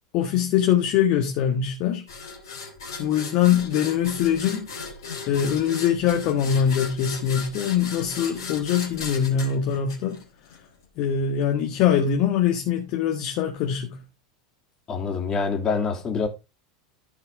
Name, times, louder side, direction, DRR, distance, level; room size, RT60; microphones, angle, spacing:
voice 1, 0.1-2.0 3.0-4.7 5.3-10.1 11.0-14.0, left 9 dB, 50° left, 1.5 m, -23 dB
sound 1, 2.1-10.6, left 4 dB, 70° left, 3.1 m, -37 dB
voice 2, 14.9-16.3, left 5 dB, 30° left, 2.8 m, -25 dB
14.5 x 4.9 x 3.7 m
figure-of-eight pair, 85°, 2 cm